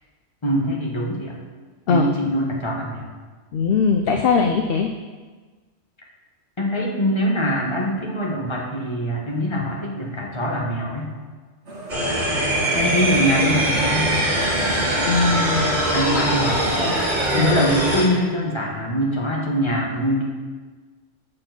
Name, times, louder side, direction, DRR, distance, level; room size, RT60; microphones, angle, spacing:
voice 1, 0.4-1.4 1.9-3.0 6.6-11.1 12.7-14.1 15.9-20.2, equal, 25° left, -2 dB, 1.4 m, -23 dB
voice 2, 3.5-4.9 15.1-15.8 17.4-17.6, left 5 dB, 60° left, 4 dB, 0.7 m, -20 dB
sound 1, 11.7-16.7, right 3 dB, 65° right, 1.5 m, -34 dB
sound 2, 11.9-18.0, right 1 dB, 40° right, 2.1 m, -22 dB
7.6 x 4.7 x 6.0 m, 1.4 s
omnidirectional pair, 1.2 m